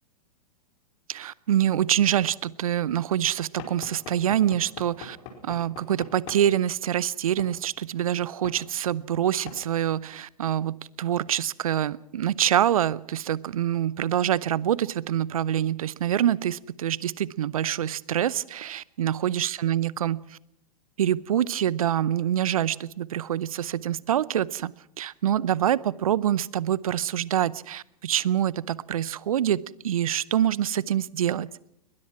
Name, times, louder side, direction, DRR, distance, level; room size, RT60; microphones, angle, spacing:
voice 1, 1.1-5.2 5.4-20.2 21.0-31.5, right 11 dB, 60° right, 22 dB, 0.8 m, -25 dB
Knock / Wood, 3.6-6.5 7.4-7.6 8.4-8.6 9.5-9.6, left 6 dB, 45° left, 4.9 m, -42 dB
21.5 x 20.5 x 5.9 m, 0.74 s
figure-of-eight pair, 100°, 20 cm